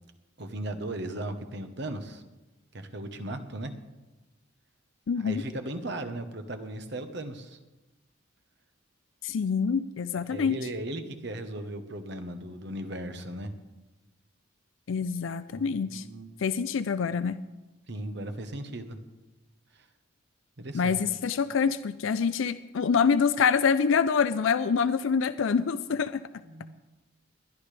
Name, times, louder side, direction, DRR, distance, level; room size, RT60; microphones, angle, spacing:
voice 1, 0.4-2.2 2.7-3.7 5.1-7.6 10.3-13.5 15.5-16.3 17.9-19.0 19.7-19.9 20.6-21.0 26.4-26.9, right 1 dB, 60° right, 8 dB, 1.1 m, -37 dB
voice 2, 5.1-5.4 9.2-10.6 14.9-16.0 16.4-17.4 20.7-26.3, left 6 dB, 75° left, 13 dB, 0.4 m, -26 dB
20.0 x 12.0 x 3.4 m, 1.1 s
head